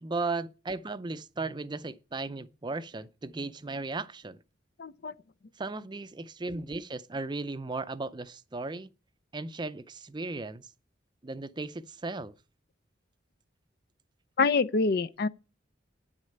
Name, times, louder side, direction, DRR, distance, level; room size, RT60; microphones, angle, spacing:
voice 1, 0.0-4.4 5.6-8.9 9.3-10.7 11.2-12.3, right 3 dB, 25° right, 0.5 m, -36 dB
voice 2, 4.8-5.1 14.4-15.3, left 4 dB, 55° left, 0.5 m, -26 dB
9.4 x 6.4 x 8.7 m
head